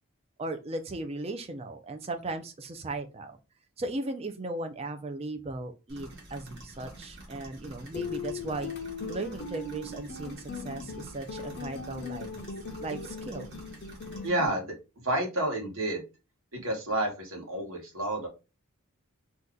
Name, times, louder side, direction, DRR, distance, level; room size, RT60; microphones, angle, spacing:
voice 1, 0.4-3.4 3.8-8.7 9.1-12.3 12.8-13.5, right 2 dB, 30° right, 6 dB, 0.4 m, -37 dB
sound 1, 5.9-14.3, right 1 dB, 50° right, 1.1 m, -48 dB
sound 2, 7.9-14.5, left 4 dB, 50° left, 0.5 m, -39 dB
voice 2, 14.2-14.7 15.0-16.0 16.5-18.3, right 1 dB, 70° right, 1 dB, 1.2 m, -30 dB
2.7 x 2.3 x 3.6 m, 0.29 s
head